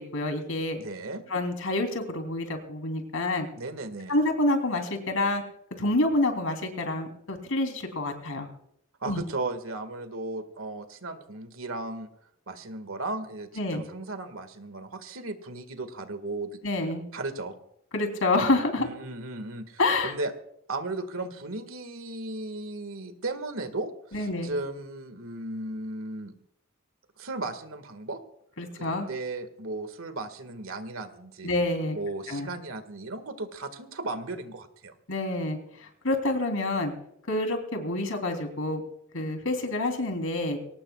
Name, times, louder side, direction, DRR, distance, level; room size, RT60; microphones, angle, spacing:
voice 1, 0.0-0.8 1.3-3.5 4.1-5.4 5.8-8.5 9.1-9.2 13.6-13.8 16.6-17.0 17.9-18.9 19.8-20.1 24.1-24.5 28.6-29.1 31.4-32.0 32.3-32.5 35.1-36.9 37.3-38.8 39.1-40.6, left 2 dB, 80° left, 5 dB, 3.4 m, -27 dB
voice 2, 0.7-1.2 3.6-4.2 9.0-12.1 12.5-16.6 17.1-17.5 18.8-20.3 20.7-26.3 27.2-28.2 28.7-31.5 31.9-34.9, right 2 dB, 85° right, 9 dB, 1.9 m, -36 dB
23.0 x 18.5 x 2.4 m, 0.73 s
head